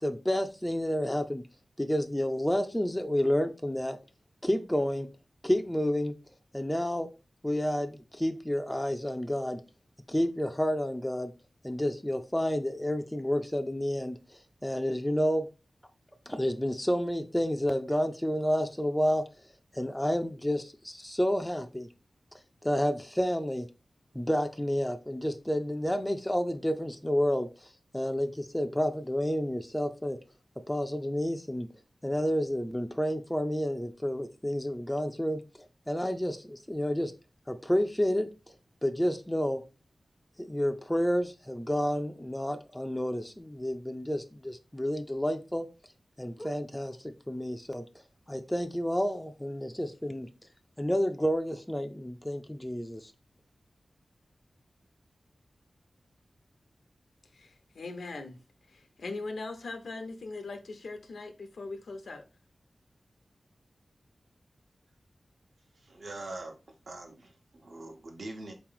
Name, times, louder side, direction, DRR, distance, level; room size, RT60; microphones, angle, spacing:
voice 1, 0.0-1.4 1.8-4.0 4.4-5.1 5.4-6.1 6.5-7.1 7.4-9.6 10.1-11.3 11.6-15.5 16.3-19.2 19.7-21.9 22.6-23.7 24.1-27.5 27.9-30.2 30.7-31.7 32.0-35.4 35.9-37.1 37.5-38.3 38.8-39.6 40.4-45.7 46.2-47.8 48.3-50.3 50.8-53.1, equal, 10° left, 0.4 m, -30 dB
voice 2, 57.3-58.4 58.7-62.2, left 3 dB, 90° left, 0.7 m, -40 dB
voice 3, 65.7-66.6 66.9-68.5, right 2 dB, 65° right, 1.0 m, -43 dB
4.2 x 3.0 x 3.8 m
wide cardioid pair, 100°, 0 cm